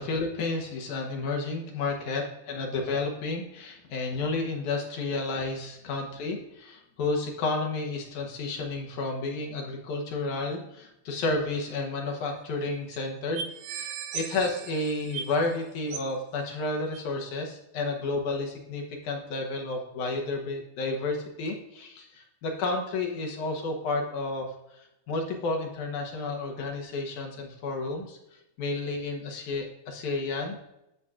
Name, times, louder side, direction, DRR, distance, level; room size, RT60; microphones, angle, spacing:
voice 1, 0.0-13.4 13.8-24.5 24.7-30.7, left 3 dB, 65° left, 1 dB, 2.1 m, -31 dB
sound 1, 12.1-12.2 12.4-12.5 12.9-13.0 13.3-15.5 15.9-16.2 16.9-17.0, right 7 dB, 75° right, 2.4 m, -37 dB
10.5 x 7.5 x 2.4 m, 0.87 s
omnidirectional pair, 4.4 m